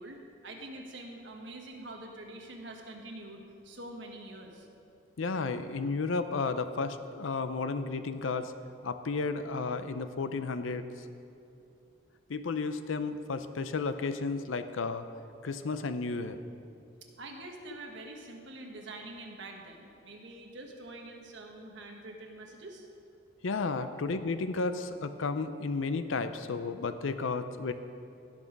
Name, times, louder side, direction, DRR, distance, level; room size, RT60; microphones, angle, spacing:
voice 1, 0.0-4.7 17.2-22.9 23.8-24.0, right 2 dB, 70° right, 1 dB, 1.4 m, -45 dB
voice 2, 5.2-8.5 8.8-10.8 12.3-15.1 15.4-16.4 23.4-27.7, left 4 dB, 90° left, 10 dB, 0.5 m, -33 dB
16.5 x 6.2 x 5.2 m, 2.6 s
head